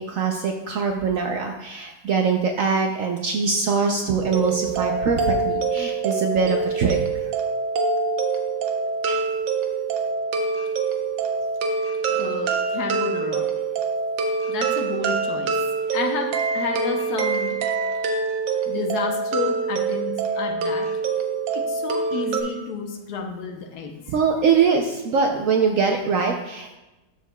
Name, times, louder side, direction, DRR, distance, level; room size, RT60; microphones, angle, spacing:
voice 1, 0.0-7.0 9.1-9.2 24.1-26.7, right 5 dB, 70° right, 3 dB, 0.7 m, -23 dB
sound 1, 4.3-22.4, right 4 dB, 90° right, 1.4 m, -25 dB
voice 2, 12.1-13.5 14.5-15.5 15.9-17.6 18.7-20.9 21.5-23.9, left 5 dB, 65° left, 4 dB, 1.3 m, -30 dB
13.0 x 4.7 x 2.2 m, 1.0 s
omnidirectional pair, 1.9 m